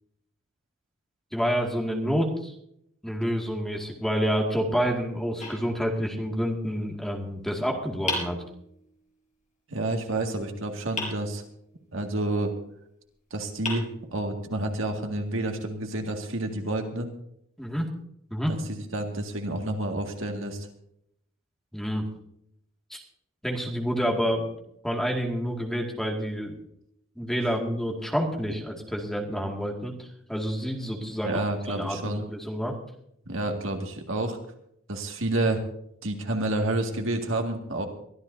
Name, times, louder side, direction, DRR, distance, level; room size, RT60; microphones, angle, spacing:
voice 1, 1.3-2.5 3.0-8.4 17.6-17.9 18.3-18.5 21.7-22.0 22.9-23.0 23.4-24.5 24.8-26.6 27.2-32.7, equal, ahead, 0 dB, 2.1 m, -28 dB
sound 1, 5.4-6.4 8.1-9.1 11.0-11.9 13.0-13.1 13.6-14.6, left 2 dB, 35° left, 5.0 m, -36 dB
voice 2, 9.7-11.4 11.9-12.5 13.3-17.1 18.5-20.7 31.2-32.2 33.3-34.4 34.9-35.6 36.0-37.9, right 2 dB, 70° right, 3 dB, 2.0 m, -29 dB
23.5 x 13.5 x 2.7 m, 0.73 s
head